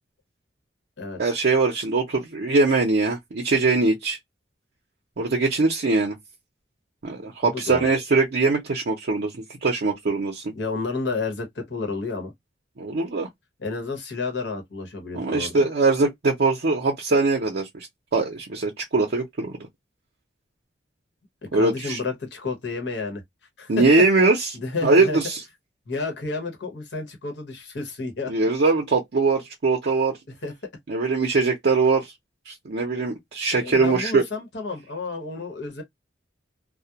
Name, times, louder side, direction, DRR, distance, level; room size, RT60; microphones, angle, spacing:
voice 1, 1.2-4.2 5.2-6.2 7.0-10.5 12.8-13.3 15.1-17.9 18.1-19.6 21.5-22.0 23.7-24.5 24.8-25.4 28.3-30.2 30.9-32.1 32.5-34.2, right 3 dB, 60° right, 0.5 m, -22 dB
voice 2, 7.4-7.8 10.5-12.3 13.6-15.6 21.5-23.2 23.6-24.1 24.5-25.2 25.9-28.3 30.4-30.7 33.6-35.8, left 3 dB, 75° left, 0.9 m, -31 dB
2.3 x 2.0 x 2.8 m
head